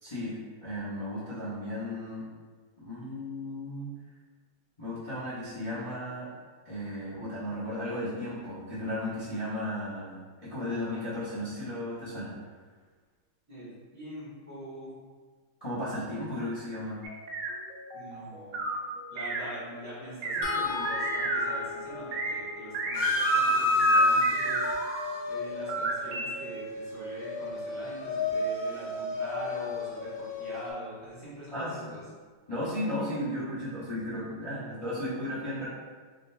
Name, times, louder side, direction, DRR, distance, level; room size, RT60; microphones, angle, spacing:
voice 1, 0.0-2.3 2.8-3.9 4.8-6.3 6.6-10.1 10.4-12.3 15.6-17.0 31.5-32.0 32.5-35.7, left 1 dB, 40° left, -11 dB, 0.5 m, -35 dB
voice 2, 13.5-14.9 17.9-18.6 19.1-24.6 25.3-32.0, right 1 dB, 10° right, -9 dB, 0.8 m, -43 dB
sound 1, 17.0-21.5 21.9-22.3 22.7-23.0 23.4-25.1 25.5-26.3, right 2 dB, 75° right, 1.3 m, -33 dB
sound 2, 20.4-26.7 28.3-28.4 28.8-28.9, left 6 dB, 75° left, 1.1 m, -42 dB
sound 3, 23.0-30.7, left 1 dB, 90° left, 0.7 m, -29 dB
4.0 x 3.6 x 2.2 m, 1.5 s
omnidirectional pair, 2.4 m